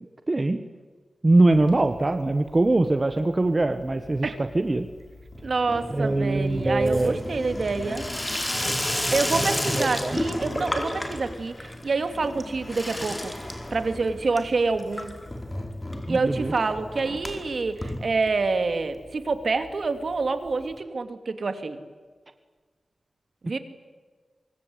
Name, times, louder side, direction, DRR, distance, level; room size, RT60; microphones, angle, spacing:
voice 1, 0.3-0.6 1.2-4.9 5.9-7.2 8.6-8.8 9.7-10.2 16.1-16.5, right 2 dB, 30° right, 9 dB, 1.4 m, -22 dB
Water tap faucet / Sink (filling or washing), 1.5-2.3 2.6-3.1 3.4-18.7 19.0-19.1 19.3-19.4 19.6-19.7 20.8-20.9, left 1 dB, 15° left, 4.7 m, -32 dB
voice 2, 5.4-8.1 9.1-13.3 13.7-15.2 16.1-21.8 23.4-23.6, right 3 dB, 60° right, 9 dB, 2.7 m, -27 dB
24.5 x 24.5 x 9.7 m, 1.4 s
wide cardioid pair, 95°, 0 cm